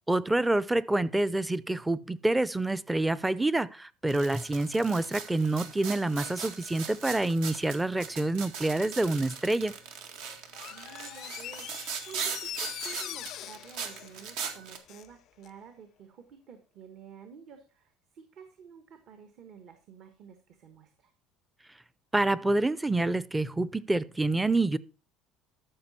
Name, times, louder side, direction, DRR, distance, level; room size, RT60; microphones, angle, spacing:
voice 1, 0.1-9.7 22.1-24.8, right 2 dB, 10° right, 0.5 m, -27 dB
sound 1, 4.1-14.8, right 6 dB, 80° right, 1.8 m, -40 dB
Door, 10.5-15.1 15.4-15.5, left 13 dB, 55° left, 0.4 m, -42 dB
voice 2, 10.7-21.1, right 7 dB, 55° right, 1.4 m, -51 dB
13.5 x 5.9 x 4.2 m
cardioid pair, 120°, 0 cm